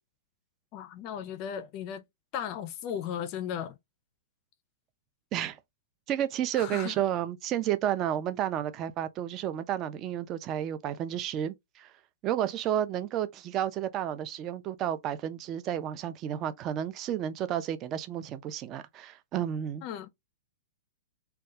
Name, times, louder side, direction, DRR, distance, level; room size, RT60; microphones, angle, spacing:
voice 1, 0.7-2.0 2.3-3.8 6.5-7.0 19.8-20.1, left 9 dB, 40° left, 0.4 m, -36 dB
voice 2, 6.1-11.9 12.2-19.8, right 11 dB, 35° right, 0.3 m, -31 dB
2.2 x 2.2 x 2.7 m
hypercardioid pair, 120°, 0 cm